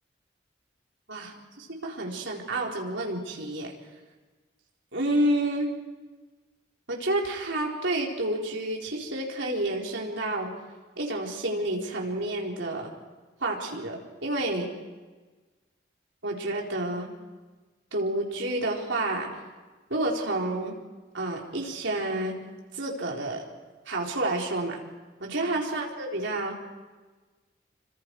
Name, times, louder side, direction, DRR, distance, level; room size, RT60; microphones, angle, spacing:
voice 1, 1.1-3.7 4.9-5.7 6.9-10.5 11.0-12.9 13.4-14.7 16.2-17.1 17.9-19.3 19.9-20.7 21.1-22.4 22.7-23.4 23.9-24.8 25.2-26.6, right 1 dB, 80° right, -1 dB, 4.2 m, -29 dB
28.0 x 25.0 x 4.8 m, 1.3 s
head